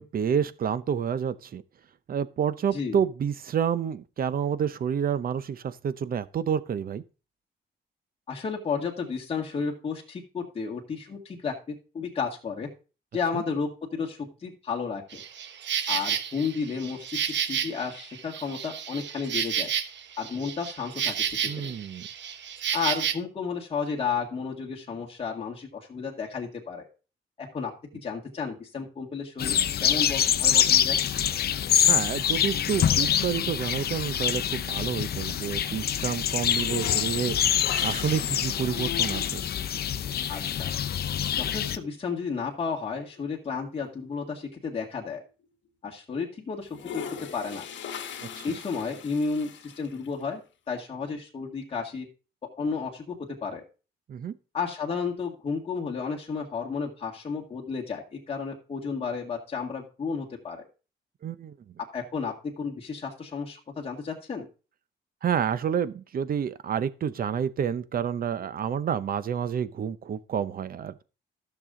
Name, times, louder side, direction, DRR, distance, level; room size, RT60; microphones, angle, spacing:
voice 1, 0.0-1.6 2.1-7.0 13.3-13.4 21.5-22.1 31.9-37.4 37.8-39.4 48.2-48.5 54.1-54.3 61.2-61.5 65.2-71.0, right 8 dB, 50° right, 0.7 m, -29 dB
voice 2, 8.3-12.7 13.1-15.2 15.9-19.7 20.2-21.7 22.7-26.9 27.4-29.6 29.8-31.0 40.3-40.7 41.4-45.2 45.8-47.1 47.3-47.7 48.4-50.4 50.7-52.1 52.6-53.6 54.5-60.7 61.9-64.5, left 5 dB, 30° left, 2.0 m, -32 dB
Insect, 15.1-23.1, right 8 dB, 70° right, 1.1 m, -31 dB
sound 1, 29.4-41.8, left 9 dB, 55° left, 0.7 m, -25 dB
sound 2, 33.1-33.2 33.6-35.6 35.8-35.9 36.4-40.2 41.6-41.7 42.1-42.2 42.5-44.9 45.4-45.5 46.6-50.2, left 8 dB, 75° left, 1.2 m, -41 dB
14.0 x 6.9 x 3.7 m
wide cardioid pair, 155°, 19 cm